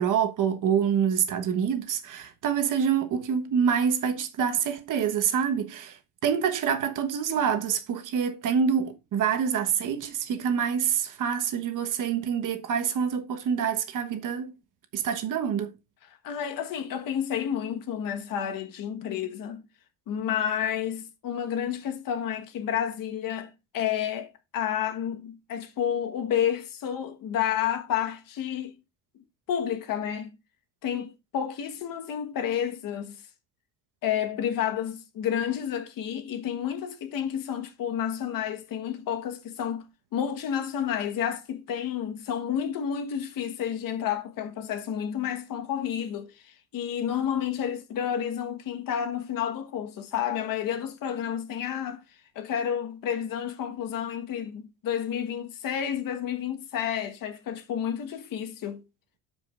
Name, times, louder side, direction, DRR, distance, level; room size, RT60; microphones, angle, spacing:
voice 1, 0.0-6.0 6.2-14.5 14.9-15.7, right 7 dB, 55° right, 1.3 m, -26 dB
voice 2, 16.2-19.6 20.1-28.7 29.5-30.3 30.8-33.2 34.0-39.8 40.1-52.0 52.3-58.8, left 9 dB, 60° left, 1.4 m, -30 dB
13.0 x 5.2 x 2.5 m
cardioid pair, 105°, 38 cm